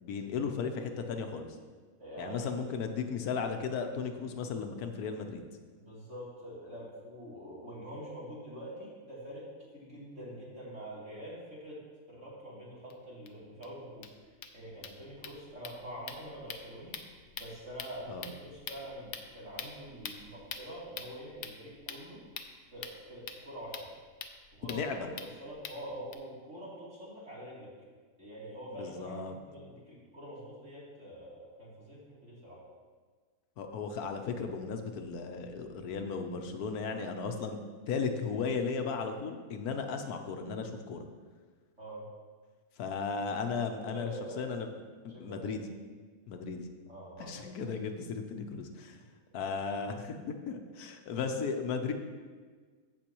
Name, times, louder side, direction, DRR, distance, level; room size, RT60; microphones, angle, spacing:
voice 1, 0.0-1.5 2.2-5.4 18.1-18.3 24.7-25.1 28.8-29.3 33.6-37.6 37.9-41.0 42.8-44.1 44.4-44.7 45.0-45.6 46.3-46.7 47.2-49.0 49.3-50.2 50.5-51.9, left 5 dB, 80° left, 5 dB, 1.3 m, -35 dB
voice 2, 2.0-2.7 5.8-11.8 12.1-14.1 14.5-17.0 17.3-22.2 22.7-23.9 24.5-27.7 28.2-32.6 41.8-42.1 43.9-44.4 45.1-45.6 46.9-47.4 49.0-49.1, equal, 50° right, -8 dB, 3.4 m, -45 dB
sound 1, 12.9-13.0 13.3-13.4 13.6-13.7 13.9-26.1, left 6 dB, 60° left, 0.9 m, -46 dB
15.0 x 6.2 x 3.0 m, 1.5 s
omnidirectional pair, 1.6 m